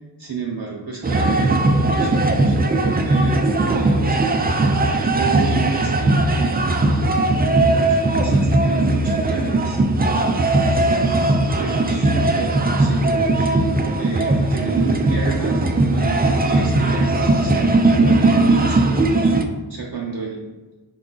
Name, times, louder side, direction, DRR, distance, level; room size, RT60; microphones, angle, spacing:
voice 1, 0.2-9.8 10.9-11.2 11.6-13.5 14.0-19.3 19.7-20.4, right 5 dB, 60° right, -2 dB, 0.7 m, -31 dB
sound 1, 1.0-19.4, right 2 dB, 25° right, 0.3 m, -18 dB
4.8 x 2.3 x 3.8 m, 1.2 s
wide cardioid pair, 50°, 44 cm